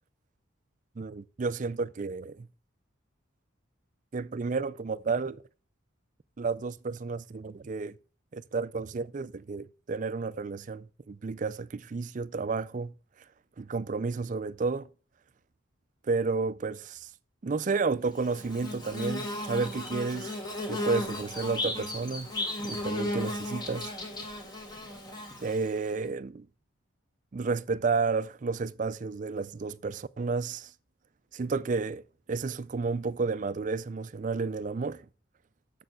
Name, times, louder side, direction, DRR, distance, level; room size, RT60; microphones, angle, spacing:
voice 1, 1.0-2.5 4.1-5.4 6.4-8.0 8.3-12.9 13.6-14.9 16.0-17.1 17.4-20.4 20.7-22.3 22.6-23.9 25.4-26.5 27.3-30.7 31.3-35.1, right 4 dB, 40° right, 0.4 m, -31 dB
Bird / Buzz, 18.2-25.9, left 1 dB, 20° left, 1.6 m, -35 dB
6.9 x 6.6 x 7.7 m
head